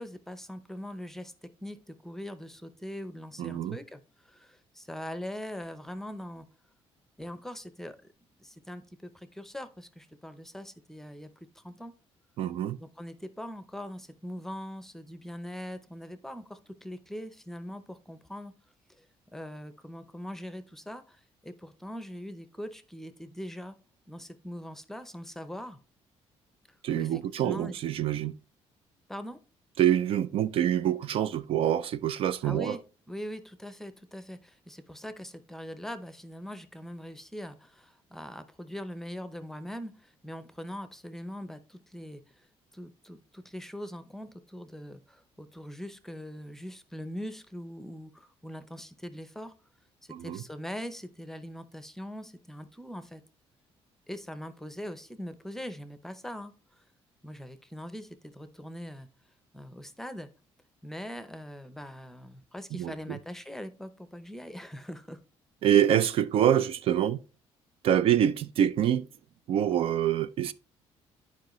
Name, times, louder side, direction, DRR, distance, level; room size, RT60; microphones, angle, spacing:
voice 1, 0.0-1.3 1.6-6.5 7.2-8.0 8.4-11.3 11.5-11.9 12.8-18.5 19.0-19.1 19.3-23.7 24.1-25.8 27.0-27.8 29.1-29.4 32.4-32.8 33.1-42.5 42.7-49.5 50.0-53.2 54.1-56.8 57.2-59.1 59.5-60.3 60.8-65.2, equal, 5° left, 0.6 m, -42 dB
voice 2, 3.4-3.8 12.4-12.8 26.8-28.4 29.8-32.8 50.1-50.4 62.7-63.2 65.6-67.2 67.8-69.1 69.5-70.5, right 10 dB, 60° right, 0.4 m, -26 dB
10.5 x 4.8 x 3.0 m
cardioid pair, 125°, 11 cm